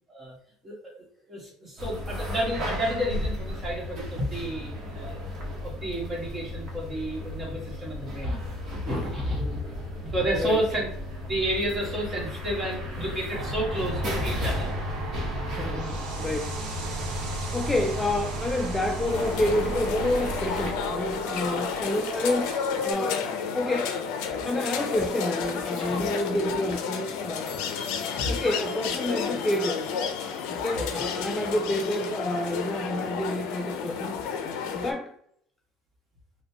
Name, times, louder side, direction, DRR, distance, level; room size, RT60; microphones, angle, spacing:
voice 1, 0.6-5.1 5.6-10.9 11.3-14.8 15.2-16.0 20.6-20.7 25.6-26.1 27.4-27.5 28.2-28.4 30.8-31.0, equal, 20° right, -3 dB, 1.4 m, -31 dB
sound 1, 1.8-20.7, left 1 dB, 50° right, 1.0 m, -36 dB
voice 2, 9.4-9.7 10.3-10.6 15.6-24.0 24.4-27.8 28.3-29.8 30.5-34.1 34.7-35.2, left 1 dB, 10° left, 2 dB, 0.3 m, -29 dB
sound 2, 13.3-22.9, right 2 dB, 75° right, 1.0 m, -35 dB
sound 3, 19.0-34.9, left 6 dB, 80° left, 0.5 m, -31 dB
4.1 x 2.2 x 2.8 m, 0.67 s
cardioid pair, 125°, 0 cm